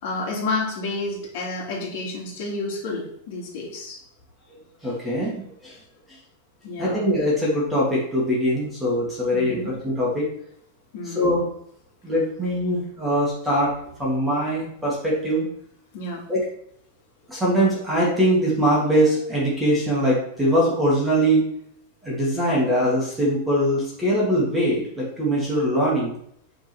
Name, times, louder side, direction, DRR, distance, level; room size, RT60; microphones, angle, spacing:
voice 1, 0.0-4.0 6.6-7.0 9.3-9.7 10.9-11.4 15.9-16.2, left 2 dB, 50° left, -2 dB, 2.6 m, -30 dB
voice 2, 4.8-5.8 6.8-10.3 11.1-11.5 12.0-13.7 14.0-15.4 16.3-16.4 17.3-21.5 22.0-26.1, equal, 5° right, -6 dB, 1.9 m, -22 dB
8.3 x 3.9 x 6.1 m, 0.70 s
supercardioid pair, 170°, 0 cm